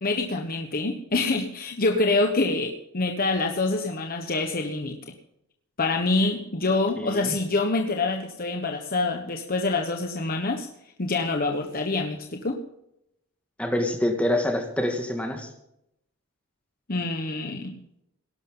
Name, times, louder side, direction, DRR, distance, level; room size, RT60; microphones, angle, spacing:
voice 1, 0.0-5.0 5.8-10.7 11.0-12.6 16.9-17.8, left 3 dB, 45° left, 3 dB, 1.2 m, -26 dB
voice 2, 7.0-7.4 13.6-15.5, left 1 dB, 5° left, 3 dB, 2.3 m, -26 dB
18.5 x 12.0 x 3.9 m, 0.80 s
head